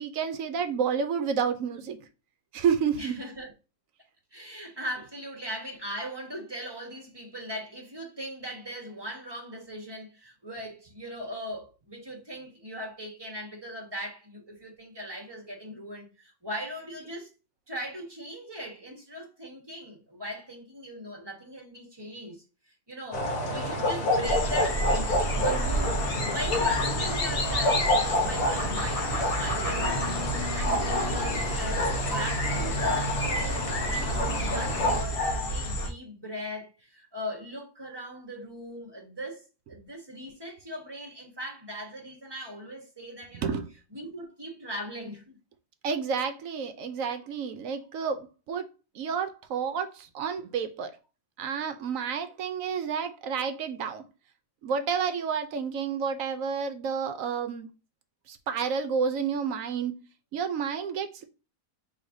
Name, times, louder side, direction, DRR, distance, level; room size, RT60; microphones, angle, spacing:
voice 1, 0.0-2.0 2.5-3.2 43.3-43.7 45.8-48.7 48.9-51.0 51.4-54.1 54.6-57.7 58.3-60.0 60.3-61.2, right 6 dB, 65° right, 0.9 m, -30 dB
voice 2, 3.0-3.5 4.3-17.3 17.7-22.4 22.9-26.0 26.3-30.0 30.3-43.5 43.9-45.4, equal, 15° right, 1.1 m, -39 dB
sound 1, 23.1-35.0, left 1 dB, 60° left, 1.4 m, -29 dB
sound 2, 24.2-35.9, left 1 dB, 40° left, 1.0 m, -30 dB
6.3 x 3.2 x 2.6 m
omnidirectional pair, 1.7 m